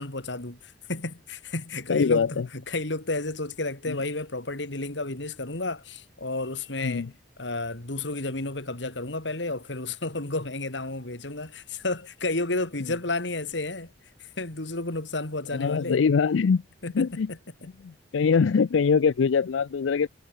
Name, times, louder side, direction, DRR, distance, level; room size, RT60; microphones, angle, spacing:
voice 1, 0.0-7.1 7.4-13.9 14.2-16.0 16.8-17.4, left 2 dB, 65° left, 2.7 m, -32 dB
voice 2, 1.9-2.5 3.9-4.0 6.8-7.1 15.5-16.6 16.9-17.3 17.8-20.1, left 5 dB, 85° left, 0.4 m, -23 dB
head